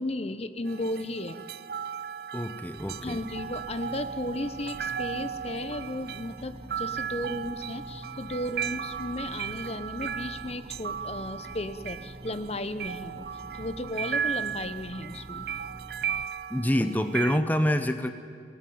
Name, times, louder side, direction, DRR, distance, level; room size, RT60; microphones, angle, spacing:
voice 1, 0.0-1.4 3.0-13.2 13.5-15.5, left 1 dB, 35° left, 12 dB, 1.0 m, -34 dB
sound 1, 0.7-17.4, right 8 dB, 60° right, 0.5 m, -36 dB
voice 2, 2.3-3.2 16.5-18.1, equal, 10° left, 8 dB, 0.8 m, -26 dB
sound 2, 2.7-16.3, right 1 dB, 25° right, 1.0 m, -46 dB
25.5 x 18.0 x 9.4 m, 2.2 s
head